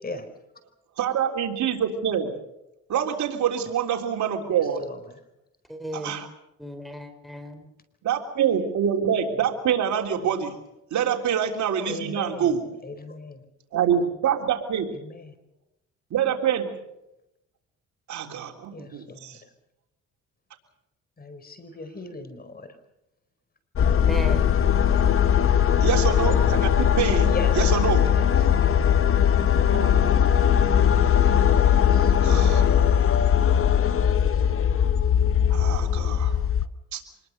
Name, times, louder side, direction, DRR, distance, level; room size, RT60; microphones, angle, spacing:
voice 1, 1.0-2.3 2.9-4.8 5.9-6.3 8.0-10.6 10.9-12.6 13.7-14.9 16.1-16.7 18.1-19.4 25.8-28.1 29.7-30.3 32.2-32.6 35.5-36.4 36.9-37.0, right 8 dB, 70° right, 2 dB, 3.6 m, -26 dB
voice 2, 4.5-5.2 10.2-10.3 11.9-13.4 14.9-15.4 18.7-19.5 21.2-22.8 27.2-28.6 31.5-32.1, left 2 dB, 30° left, 10 dB, 4.7 m, -38 dB
voice 3, 5.7-6.2 6.6-7.7 24.0-24.4 32.5-32.9, right 1 dB, ahead, 5 dB, 4.3 m, -36 dB
sound 1, 23.8-36.7, left 9 dB, 45° left, 1.1 m, -20 dB
25.5 x 21.5 x 6.6 m, 0.88 s
cardioid pair, 90°, 30 cm